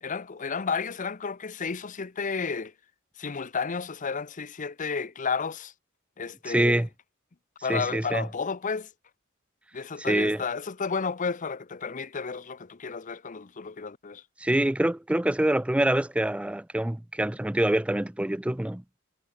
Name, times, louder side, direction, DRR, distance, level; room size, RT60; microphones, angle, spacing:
voice 1, 0.0-2.7 3.2-5.7 6.2-6.8 7.6-8.9 9.7-14.2, left 5 dB, 35° left, 0.7 m, -32 dB
voice 2, 6.5-6.9 7.7-8.3 10.0-10.4 14.4-18.8, right 1 dB, 5° right, 0.4 m, -25 dB
head